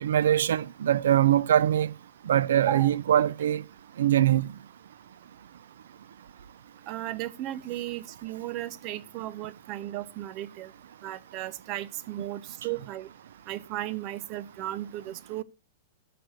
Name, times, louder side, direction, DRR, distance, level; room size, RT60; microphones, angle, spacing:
voice 1, 0.0-1.9 2.3-3.6 4.0-4.5, right 11 dB, 80° right, 0.5 m, -22 dB
voice 2, 6.9-10.7 11.0-13.1 13.5-15.4, right 14 dB, 40° right, 0.8 m, -35 dB
13.5 x 6.1 x 6.3 m
hypercardioid pair, 130°, 0 cm